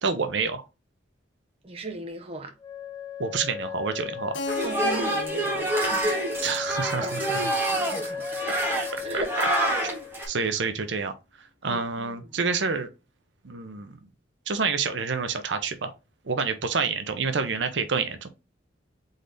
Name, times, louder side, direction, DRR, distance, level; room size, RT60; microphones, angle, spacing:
voice 1, 0.0-0.6 3.2-4.4 6.4-7.5 9.1-9.5 9.8-9.9 10.3-11.1 11.6-12.9 13.4-13.9 14.5-15.9 16.2-18.3, right 5 dB, 75° right, 0.7 m, -28 dB
voice 2, 1.6-2.5 4.6-6.2 7.0-7.2 7.6-9.3 11.6-12.2, right 2 dB, 30° right, 0.7 m, -37 dB
Wind instrument woodwind instrument, 2.6-10.3, left 5 dB, 20° left, 0.4 m, -36 dB
Keyboard (musical), 4.3-8.9, left 5 dB, 70° left, 0.6 m, -39 dB
sound 1, 4.5-10.3, right 1 dB, 10° right, 1.5 m, -27 dB
4.0 x 3.9 x 3.3 m
head